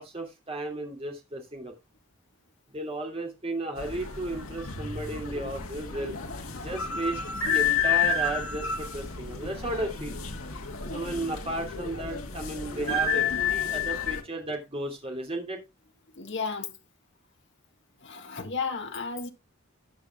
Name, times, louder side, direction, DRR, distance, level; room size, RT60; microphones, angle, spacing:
voice 1, 0.0-1.7 2.7-6.1 6.5-7.2 7.4-10.2 10.9-15.6, right 1 dB, 25° right, 2.8 m, -34 dB
sound 1, 3.8-14.2, left 5 dB, 80° left, 1.7 m, -30 dB
voice 2, 16.2-16.8 18.0-19.3, left 5 dB, 55° left, 1.6 m, -33 dB
18.0 x 6.2 x 2.4 m
head